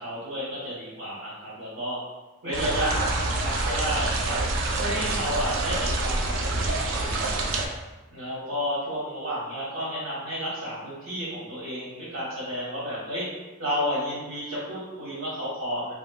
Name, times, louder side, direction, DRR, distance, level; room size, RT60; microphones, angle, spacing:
voice 1, 0.0-2.0 2.4-4.4 4.8-7.4 8.1-13.2 13.6-15.9, equal, 90° right, -8 dB, 1.1 m, -31 dB
sound 1, 2.5-7.7, right 2 dB, 65° right, 0.4 m, -27 dB
3.1 x 2.9 x 2.2 m, 1.2 s
head